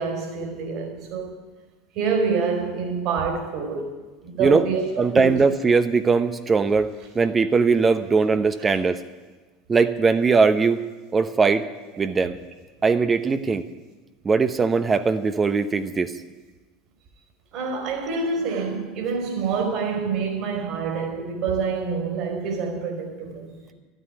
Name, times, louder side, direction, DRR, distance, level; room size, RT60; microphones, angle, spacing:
voice 1, 0.0-1.4 1.9-3.9 4.2-5.3 17.5-23.5, right 5 dB, 60° right, 4.2 m, -26 dB
voice 2, 5.0-6.9 7.1-9.0 9.7-10.8 11.1-11.6 12.0-12.4 12.8-13.6 14.2-16.1, right 4 dB, 25° right, 0.9 m, -20 dB
12.5 x 9.2 x 9.8 m
hypercardioid pair, 75°, 0 cm